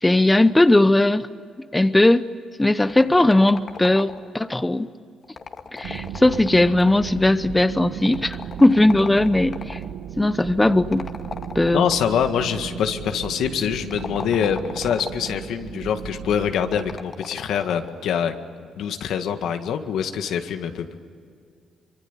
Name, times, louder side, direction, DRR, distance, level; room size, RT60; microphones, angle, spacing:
voice 1, 0.0-1.3 1.7-2.3 2.6-4.9 5.7-9.8 10.2-11.1 11.5-11.9, left 1 dB, 10° left, 12 dB, 0.9 m, -18 dB
sound 1, 2.8-4.4 5.2-7.1 8.0-9.9 10.9-12.2 13.8-15.4 16.6-18.0, left 5 dB, 45° left, 2.0 m, -37 dB
sound 2, 5.8-17.0, right 8 dB, 90° right, 1.3 m, -35 dB
voice 2, 11.7-18.3 18.8-21.0, left 8 dB, 75° left, 7 dB, 1.8 m, -24 dB
25.0 x 24.5 x 9.8 m, 2.3 s
cardioid pair, 90°, 0 cm